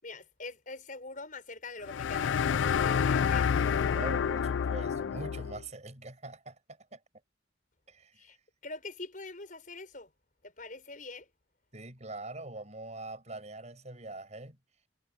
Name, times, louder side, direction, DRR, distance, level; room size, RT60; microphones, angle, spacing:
voice 1, 0.0-3.5 8.1-8.4 8.6-10.1 10.4-11.3, left 3 dB, 45° left, 6.1 m, -44 dB
sound 1, 1.9-5.6, left 7 dB, 80° left, 0.4 m, -28 dB
voice 2, 3.9-7.0 7.9-8.3 11.7-14.6, right 2 dB, 40° right, 6.0 m, -43 dB
head